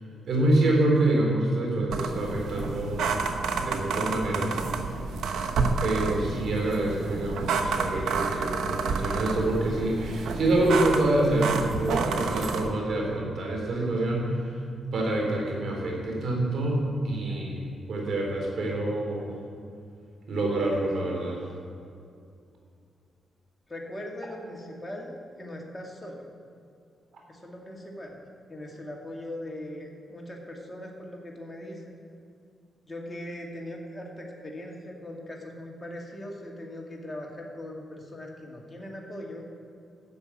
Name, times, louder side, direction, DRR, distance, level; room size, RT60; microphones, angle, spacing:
voice 1, 0.3-3.2 3.6-4.6 5.8-14.6 14.9-19.3 20.3-21.4, right 1 dB, 70° right, -1 dB, 3.8 m, -26 dB
sound 1, 1.9-12.7, right 4 dB, 85° right, 0.9 m, -29 dB
voice 2, 23.7-26.3 27.3-28.2 28.5-32.0 32.9-39.4, left 1 dB, 20° left, -1 dB, 2.3 m, -40 dB
11.5 x 7.1 x 8.5 m, 2.4 s
cardioid pair, 80°, 0 cm